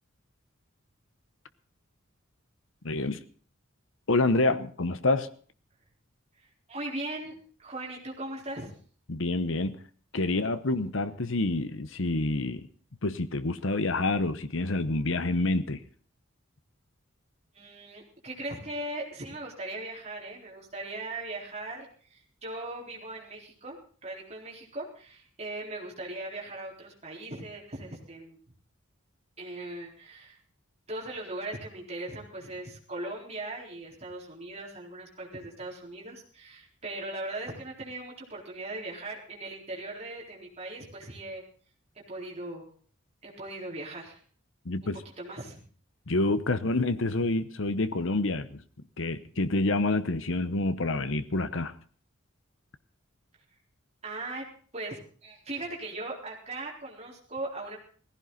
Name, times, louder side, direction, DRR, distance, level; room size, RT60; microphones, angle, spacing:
voice 1, 2.8-3.2 4.1-5.3 9.1-9.8 10.1-12.7 13.0-15.8 44.6-45.0 46.1-48.6 49.0-51.7, left 2 dB, 70° left, 1.0 m, -27 dB
voice 2, 6.3-8.7 17.5-28.4 29.4-30.4 30.9-41.4 42.1-42.7 43.2-44.2 45.2-45.6 54.0-54.5 54.7-57.8, right 2 dB, 30° right, 4.1 m, -39 dB
18.0 x 15.5 x 4.0 m
head